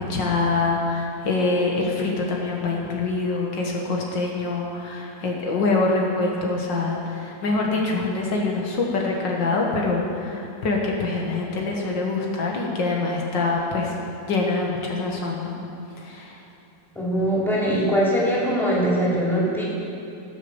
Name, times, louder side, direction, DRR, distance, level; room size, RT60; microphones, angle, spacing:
voice 1, 0.0-13.9 14.3-15.6 16.0-16.4, left 3 dB, 75° left, -1 dB, 2.2 m, -25 dB
voice 2, 16.9-19.7, equal, ahead, -6 dB, 3.1 m, -22 dB
17.5 x 6.6 x 7.1 m, 2.7 s
omnidirectional pair, 2.0 m